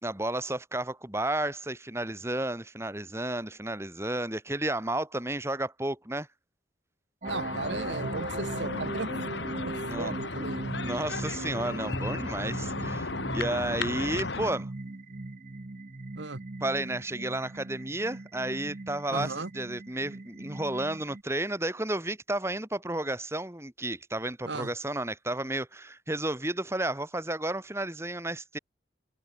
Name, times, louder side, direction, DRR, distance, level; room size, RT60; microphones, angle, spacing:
voice 1, 0.0-6.3 9.8-10.1 10.8-14.7 16.6-28.6, right 1 dB, 15° right, 2.2 m, -32 dB
sound 1, 7.2-14.5, left 3 dB, 75° left, 2.0 m, -35 dB
sound 2, 7.2-21.2, right 2 dB, 45° right, 0.7 m, -39 dB
voice 2, 7.3-9.1 9.7-10.7 16.2-16.4 19.1-19.5 24.4-24.7, right 3 dB, 80° right, 1.7 m, -36 dB
head